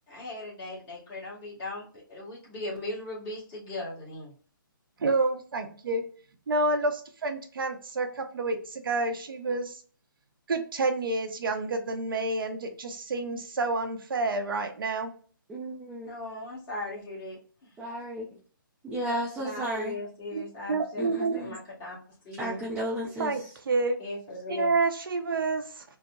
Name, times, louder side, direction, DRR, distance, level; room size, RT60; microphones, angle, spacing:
voice 1, 0.1-4.3 16.0-17.7 19.4-22.0 22.2-22.6 24.0-24.7, left 2 dB, 20° left, -5 dB, 1.4 m, -38 dB
voice 2, 5.0-6.0 6.5-9.8 10.5-15.1 20.3-20.4 20.7-21.4 23.2-24.0 24.5-25.8, right 3 dB, 75° right, 6 dB, 0.7 m, -29 dB
voice 3, 15.5-16.1 17.8-18.3 18.8-20.0 21.0-21.6 22.4-23.5, equal, 5° right, -7 dB, 0.5 m, -33 dB
4.0 x 2.1 x 2.3 m, 0.43 s
hypercardioid pair, 155°, 12 cm